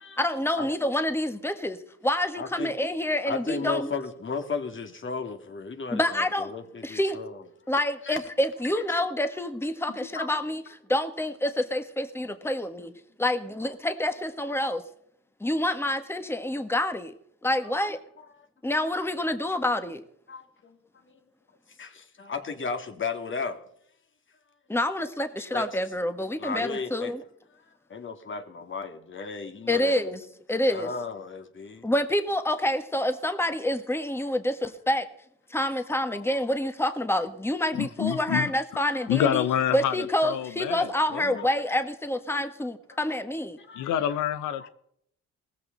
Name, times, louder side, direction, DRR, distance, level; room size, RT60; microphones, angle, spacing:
voice 1, 0.2-1.8 2.0-3.9 5.9-6.5 6.8-7.2 7.7-10.6 10.9-12.9 13.2-14.8 15.4-17.1 17.4-18.0 18.6-20.0 24.7-27.2 29.7-30.2 30.5-30.9 31.8-35.0 35.5-39.4 39.7-43.6, left 1 dB, 10° left, 1.6 m, -27 dB
voice 2, 2.4-2.7 3.2-7.4 8.0-8.2 9.9-10.3 12.2-12.3 17.6-17.8 18.2-18.5 18.8-19.0 20.3-20.8 21.0-21.2 21.8-23.6 25.5-25.7 26.3-27.1 27.9-30.1 30.7-31.9 36.1-36.2 39.0-39.1 41.4-41.6 42.9-43.0 43.6-44.2 44.6-44.7, left 4 dB, 40° left, 2.6 m, -35 dB
voice 3, 37.7-38.5 39.1-41.5 43.8-44.7, left 10 dB, 85° left, 1.0 m, -27 dB
18.5 x 15.0 x 4.1 m
cardioid pair, 90°, 30 cm